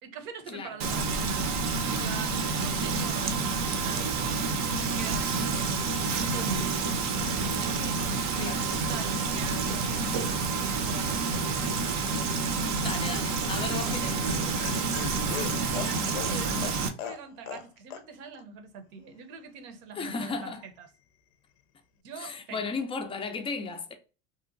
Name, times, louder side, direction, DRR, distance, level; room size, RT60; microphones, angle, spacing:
voice 1, 0.0-4.4 4.6-5.5 6.1-6.8 7.4-8.0 8.2-10.3 10.9-11.8 13.7-14.2 15.5-20.9 22.0-22.7, right 5 dB, 70° right, 0.8 m, -43 dB
Frying (food), 0.8-16.9, right 4 dB, 45° right, 0.6 m, -29 dB
voice 2, 12.8-14.2 20.0-20.6 22.2-23.9, left 4 dB, 15° left, 0.3 m, -35 dB
Laughter, 14.2-17.7 17.9-18.0 18.3-18.4, left 10 dB, 75° left, 0.5 m, -38 dB
2.9 x 2.1 x 2.4 m
supercardioid pair, 110°, 40 cm